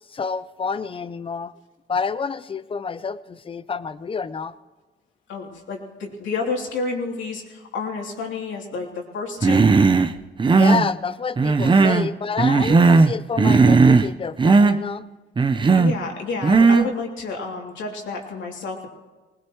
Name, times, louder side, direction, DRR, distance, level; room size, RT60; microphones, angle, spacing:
voice 1, 0.1-1.5 1.9-4.5 10.5-15.1 15.5-15.7, left 5 dB, 25° left, 15 dB, 0.6 m, -28 dB
voice 2, 5.3-9.8 11.6-11.9 15.7-18.9, left 4 dB, 70° left, 0 dB, 3.1 m, -30 dB
Human voice, 9.4-10.1 10.4-10.9 11.4-12.1 12.4-13.1 13.4-14.1 14.4-14.8 15.4-15.9 16.4-16.9, right 4 dB, 25° right, 0.7 m, -16 dB
21.0 x 19.5 x 3.1 m, 1.2 s
cardioid pair, 90°, 20 cm